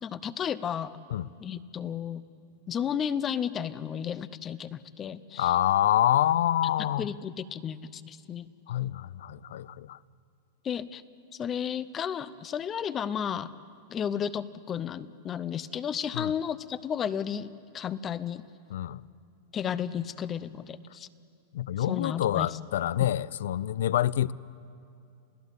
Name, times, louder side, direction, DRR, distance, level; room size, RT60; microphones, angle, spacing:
voice 1, 0.0-0.9 1.4-2.2 2.7-5.6 6.6-8.5 10.6-11.0 11.3-13.5 13.9-18.4 19.5-21.1 21.8-22.6 23.0-23.1, left 8 dB, 20° left, 0.6 m, -33 dB
voice 2, 5.4-7.1 8.7-10.0 16.1-16.3 18.7-19.0 21.5-24.3, left 12 dB, 75° left, 0.5 m, -26 dB
29.0 x 17.0 x 8.2 m
supercardioid pair, 160°, 0 cm